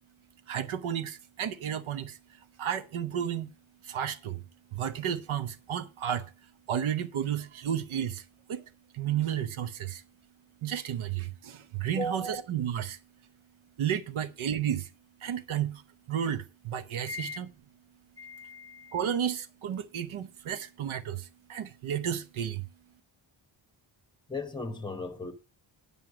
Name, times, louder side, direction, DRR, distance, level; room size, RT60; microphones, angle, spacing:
voice 1, 0.5-3.5 3.8-4.4 4.7-8.6 8.9-10.0 10.6-13.0 13.8-14.9 15.2-15.8 16.1-17.5 18.9-22.7, right 9 dB, 80° right, 0.9 m, -32 dB
voice 2, 12.0-12.4 17.1-17.4 18.2-19.0 24.3-25.3, left 1 dB, 10° left, 0.8 m, -37 dB
9.5 x 5.5 x 5.9 m
wide cardioid pair, 160°, 48 cm